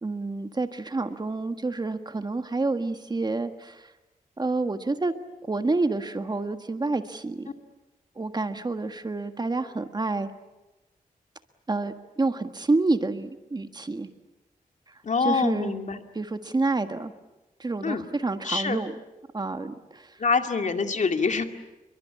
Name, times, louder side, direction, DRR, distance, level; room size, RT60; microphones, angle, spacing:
voice 1, 0.0-3.9 4.4-5.1 5.5-7.5 8.1-10.3 11.7-14.1 14.9-15.7 16.1-17.1 17.6-19.0 19.3-20.2, right 3 dB, 30° right, 8 dB, 1.5 m, -28 dB
voice 2, 15.0-16.0 17.8-18.0 18.4-18.8 20.2-21.5, left 4 dB, 55° left, 6 dB, 2.3 m, -25 dB
29.0 x 23.0 x 8.7 m, 1.0 s
wide cardioid pair, 120°, 15 cm